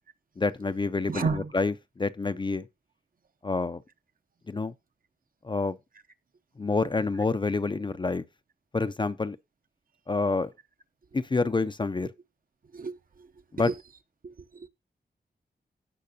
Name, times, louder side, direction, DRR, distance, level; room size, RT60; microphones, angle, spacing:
voice 1, 0.4-2.7 3.4-3.8 4.5-4.7 5.4-5.8 6.6-8.2 8.7-9.4 10.1-10.5 11.1-12.1 13.5-13.7, left 3 dB, 25° left, 0.5 m, -28 dB
voice 2, 1.1-1.5 12.7-13.3 13.6-13.8 14.2-14.7, right 5 dB, 55° right, 0.8 m, -32 dB
17.0 x 5.8 x 2.7 m
wide cardioid pair, 125°, 18 cm